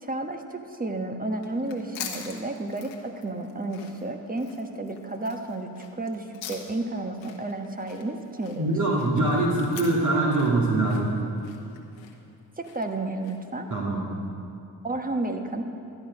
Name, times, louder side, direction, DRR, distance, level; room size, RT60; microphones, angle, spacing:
voice 1, 0.0-8.7 12.6-13.7 14.8-15.6, right 2 dB, 20° right, 5 dB, 1.2 m, -32 dB
sound 1, 1.3-13.6, left 8 dB, 80° left, 1.3 m, -44 dB
voice 2, 8.6-11.1 13.7-14.1, right 2 dB, 40° right, -5 dB, 2.3 m, -23 dB
12.5 x 9.6 x 5.2 m, 2.5 s
supercardioid pair, 55°, 44 cm